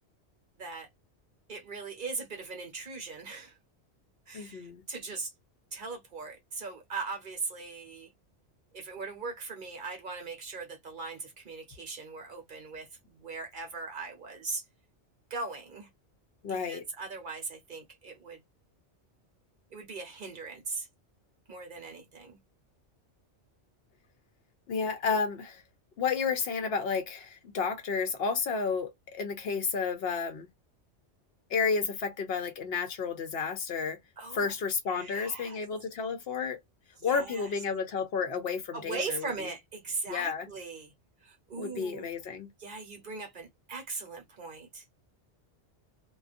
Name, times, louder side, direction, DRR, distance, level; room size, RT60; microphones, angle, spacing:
voice 1, 0.6-0.9 1.5-3.6 4.3-5.3 5.7-8.1 8.7-14.6 15.3-15.9 16.5-18.4 19.7-20.9 21.5-22.4 34.2-34.5 34.9-35.6 37.0-37.5 38.7-40.9 41.2-42.3 42.6-44.8, right 4 dB, 50° right, 0.9 m, -39 dB
voice 2, 4.3-4.8 16.4-16.8 24.7-25.6 26.0-30.5 31.5-34.0 34.3-36.6 37.0-39.3 40.1-40.5 41.6-42.5, left 5 dB, 65° left, 0.8 m, -31 dB
2.4 x 2.3 x 2.5 m
omnidirectional pair, 1.2 m